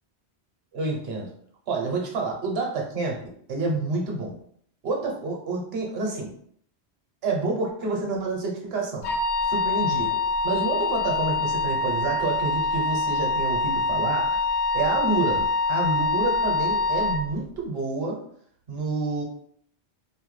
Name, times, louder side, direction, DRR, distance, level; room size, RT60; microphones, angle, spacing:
voice 1, 0.7-1.3 1.7-3.2 3.5-4.4 4.8-6.3 7.2-9.1 9.4-14.4 14.7-18.2 18.7-19.2, right 3 dB, 65° right, 0 dB, 1.0 m, -28 dB
Wind instrument woodwind instrument, 9.0-17.2, left 3 dB, 85° left, 0.9 m, -25 dB
2.6 x 2.1 x 3.1 m, 0.62 s
omnidirectional pair, 1.1 m